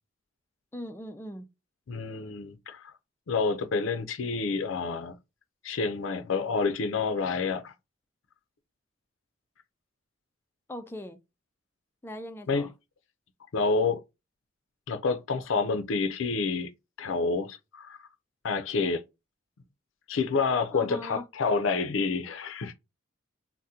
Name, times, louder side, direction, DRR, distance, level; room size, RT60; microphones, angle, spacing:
voice 1, 0.7-1.5 10.7-11.2 12.0-12.7 20.7-21.2, left 1 dB, 10° left, 0.3 m, -39 dB
voice 2, 1.9-2.9 3.3-5.2 5.6-7.7 12.5-12.7 13.5-14.0 14.9-16.7 17.0-18.0 18.4-19.0 20.1-22.7, left 4 dB, 85° left, 0.5 m, -28 dB
2.7 x 2.1 x 3.5 m
head